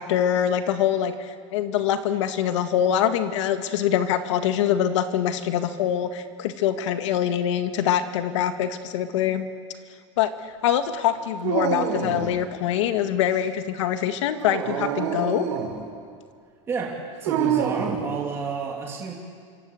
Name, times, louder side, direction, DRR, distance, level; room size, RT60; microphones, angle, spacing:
voice 1, 0.0-9.5 10.2-10.3 10.6-15.5, left 10 dB, 75° left, 8 dB, 2.1 m, -24 dB
Dog, 11.4-12.4 14.3-15.8 17.3-18.0, right 8 dB, 75° right, 5.9 m, -26 dB
voice 2, 16.7-19.1, right 5 dB, 15° right, -1 dB, 2.7 m, -30 dB
26.5 x 25.5 x 8.1 m, 2.1 s
supercardioid pair, 175°, 16 cm